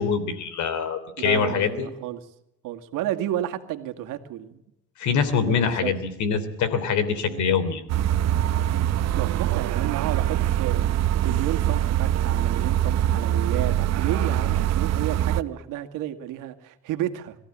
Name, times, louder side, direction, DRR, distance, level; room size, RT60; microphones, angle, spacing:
voice 1, 0.0-1.9 5.0-7.8, left 6 dB, 60° left, 13 dB, 3.3 m, -24 dB
voice 2, 1.2-2.3 2.6-4.6 5.3-5.9 7.3-7.5 9.2-10.9 11.2-17.4, right 12 dB, 70° right, 7 dB, 2.1 m, -32 dB
sound 1, 7.9-15.4, right 11 dB, 50° right, 0.9 m, -23 dB
22.5 x 14.5 x 8.7 m, 0.85 s
cardioid pair, 105°, 33 cm